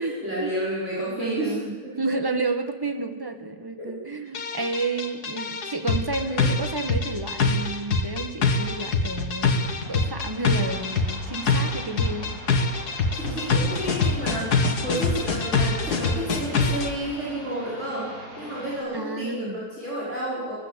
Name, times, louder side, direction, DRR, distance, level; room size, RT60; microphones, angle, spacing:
voice 1, 0.0-1.7 3.8-3.9 4.2-4.3 6.3-6.5 13.2-18.1 18.4-20.5, right 1 dB, 45° right, -7 dB, 5.9 m, -31 dB
voice 2, 1.1-9.6 9.9-12.4 18.9-19.6, right 3 dB, 15° right, 7 dB, 1.4 m, -31 dB
sound 1, 4.3-16.9, left 4 dB, 80° left, 2.2 m, -24 dB
sound 2, 9.7-18.8, equal, 70° right, 8.7 m, -42 dB
20.5 x 15.5 x 8.3 m, 1.5 s
omnidirectional pair, 1.7 m